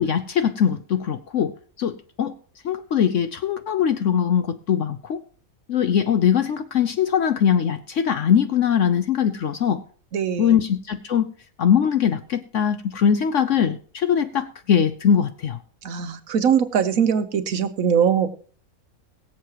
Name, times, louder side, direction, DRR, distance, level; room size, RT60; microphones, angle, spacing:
voice 1, 0.0-2.4 2.6-5.2 5.7-9.8 10.4-11.3 11.6-15.6, left 8 dB, 65° left, 10 dB, 1.0 m, -21 dB
voice 2, 10.1-10.6 15.8-18.3, right 7 dB, 75° right, 10 dB, 1.3 m, -21 dB
22.5 x 7.5 x 2.9 m, 0.44 s
omnidirectional pair, 1.5 m